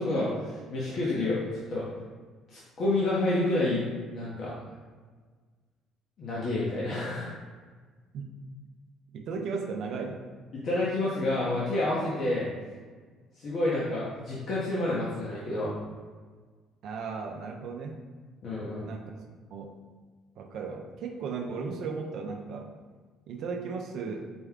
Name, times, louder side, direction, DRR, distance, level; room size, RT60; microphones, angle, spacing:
voice 1, 0.0-1.8 2.5-3.8 4.1-4.5 6.2-7.3 10.6-12.5 13.4-15.7 18.4-18.9, left 2 dB, 55° left, -7 dB, 0.9 m, -29 dB
voice 2, 9.1-10.3 16.8-18.0 18.8-19.8 20.4-22.7 23.3-24.2, right 5 dB, 65° right, 2 dB, 0.4 m, -36 dB
4.2 x 2.3 x 3.5 m, 1.5 s
cardioid pair, 95°, 0 cm